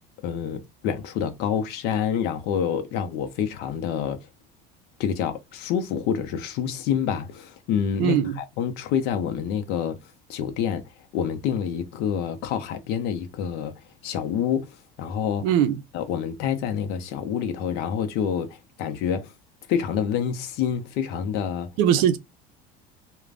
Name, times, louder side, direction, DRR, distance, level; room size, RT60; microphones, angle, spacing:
voice 1, 0.2-4.2 5.0-10.0 10.3-10.8 11.1-13.8 14.0-15.5 15.9-19.3 19.7-21.7, left 8 dB, 55° left, 0.6 m, -27 dB
voice 2, 8.0-8.4 15.4-15.8 21.8-22.2, right 9 dB, 80° right, 0.5 m, -20 dB
2.5 x 2.2 x 3.2 m
cardioid pair, 175°, 20 cm